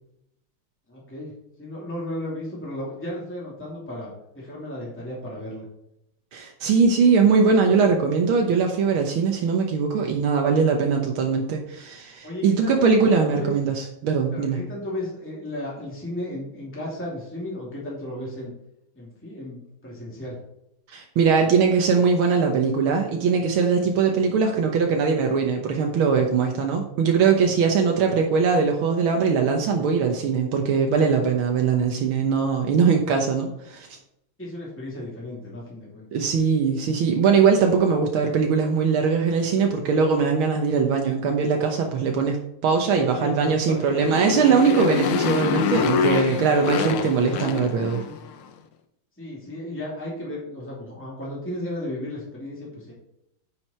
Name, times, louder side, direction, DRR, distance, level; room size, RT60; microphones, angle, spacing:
voice 1, 0.9-1.3 1.6-5.6 12.2-13.5 14.3-18.5 18.9-20.4 23.8-24.0 34.4-36.1 42.9-43.4 43.7-43.8 49.2-52.9, left 1 dB, 5° left, -5 dB, 2.7 m, -34 dB
voice 2, 6.3-13.7 14.0-14.6 20.9-33.9 36.1-48.0, right 5 dB, 80° right, 2 dB, 1.9 m, -21 dB
Motorcycle, 43.7-48.3, left 6 dB, 85° left, 1.8 m, -26 dB
10.0 x 6.4 x 4.4 m, 0.81 s
omnidirectional pair, 2.3 m